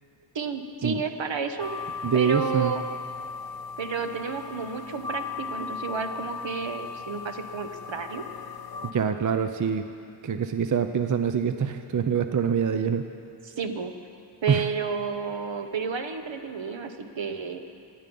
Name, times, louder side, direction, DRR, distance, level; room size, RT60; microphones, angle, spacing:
voice 1, 0.3-2.8 3.8-8.2 13.4-13.9 14.4-17.6, right 5 dB, 60° right, 7 dB, 1.1 m, -31 dB
sound 1, 1.6-8.9, left 5 dB, 50° left, 0.7 m, -37 dB
voice 2, 2.0-2.7 8.8-9.8 10.2-13.1 14.5-14.6, right 7 dB, 40° right, 8 dB, 0.5 m, -25 dB
24.0 x 9.8 x 5.3 m, 2.6 s
wide cardioid pair, 120°, 50 cm